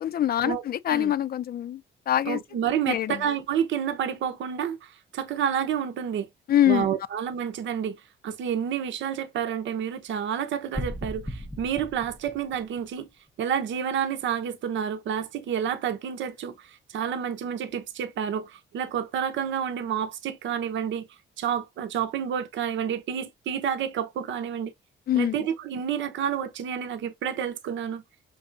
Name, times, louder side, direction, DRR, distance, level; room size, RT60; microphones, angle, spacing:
voice 1, 0.0-2.4 2.9-3.3 6.5-6.9 25.1-25.3, left 11 dB, 50° left, 0.5 m, -24 dB
voice 2, 2.3-6.3 6.7-8.0 8.2-13.1 13.4-21.1 21.4-24.7 25.2-28.0, right 8 dB, 70° right, 0.8 m, -29 dB
sound 1, 10.7-12.9, equal, ahead, 0.5 m, -36 dB
5.4 x 3.3 x 2.5 m
cardioid pair, 90°, 20 cm